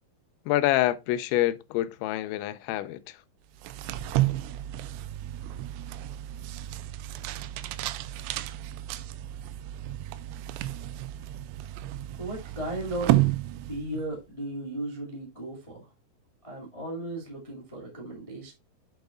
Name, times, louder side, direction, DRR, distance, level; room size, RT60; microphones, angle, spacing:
voice 1, 0.5-3.2, left 15 dB, 85° left, 2.9 m, -27 dB
sound 1, 3.6-14.1, right 15 dB, 85° right, 2.9 m, -31 dB
voice 2, 12.2-13.2 13.5-15.9 16.4-18.5, right 1 dB, 20° left, 0.9 m, -36 dB
7.9 x 6.9 x 2.5 m
omnidirectional pair, 5.3 m